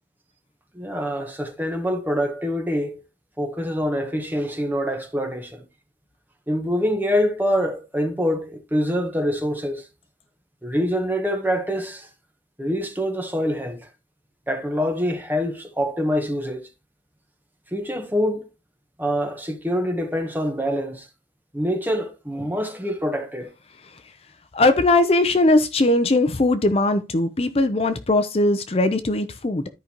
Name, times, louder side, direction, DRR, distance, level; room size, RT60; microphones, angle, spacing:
voice 1, 0.7-3.0 3.4-5.7 6.5-9.9 10.6-12.1 12.6-13.9 14.5-16.7 17.7-18.5 19.0-21.1 21.5-23.5, equal, 10° right, 1.1 m, -25 dB
voice 2, 24.5-29.7, left 2 dB, 35° left, 0.5 m, -19 dB
13.0 x 5.1 x 2.9 m
head